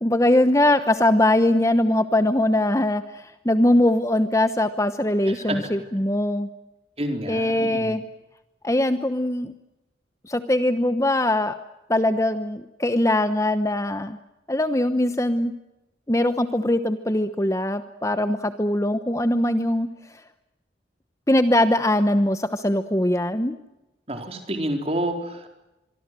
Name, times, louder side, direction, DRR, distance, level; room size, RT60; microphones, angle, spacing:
voice 1, 0.0-6.5 7.3-8.0 8.6-9.5 10.2-11.5 11.9-14.2 14.5-15.5 16.1-19.9 21.3-23.5, left 1 dB, 15° left, 10 dB, 1.0 m, -21 dB
voice 2, 7.0-8.0 24.1-25.5, right 1 dB, 35° right, 5 dB, 4.1 m, -28 dB
25.5 x 24.0 x 7.7 m, 0.95 s
head